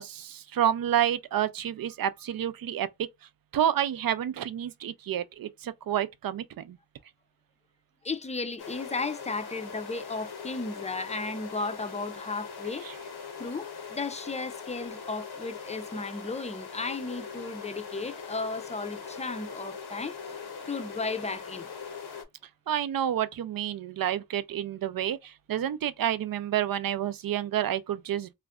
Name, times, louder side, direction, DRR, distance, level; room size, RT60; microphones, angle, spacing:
voice 1, 0.0-3.1 3.5-6.8 12.8-13.0 22.7-28.3, right 10 dB, 65° right, 0.5 m, -29 dB
voice 2, 8.0-12.9 13.4-20.2 20.7-21.7, left 3 dB, 20° left, 0.4 m, -34 dB
sound 1, 8.6-22.2, left 6 dB, 75° left, 0.8 m, -41 dB
2.4 x 2.1 x 3.5 m
cardioid pair, 45°, 38 cm